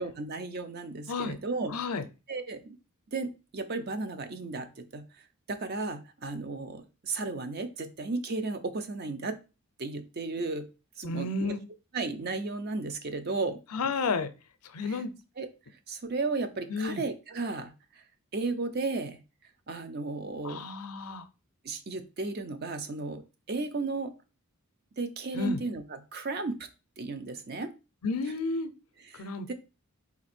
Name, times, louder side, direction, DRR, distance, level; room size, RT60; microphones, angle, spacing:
voice 1, 0.0-1.8 2.3-2.8 3.1-5.0 5.5-9.4 9.8-10.7 11.0-11.5 11.9-13.9 14.9-15.0 15.4-15.5 15.9-17.7 18.3-19.2 19.7-20.6 21.6-23.2 23.5-24.1 25.0-26.6 27.0-27.7 29.0-29.5, right 3 dB, 45° right, 8 dB, 0.6 m, -34 dB
voice 2, 1.7-2.0 11.0-11.6 13.7-14.3 14.7-15.1 16.7-17.0 20.4-21.3 25.3-25.6 28.0-28.7 29.2-29.5, left 4 dB, 90° left, 12 dB, 0.5 m, -31 dB
4.0 x 2.6 x 4.2 m, 0.30 s
head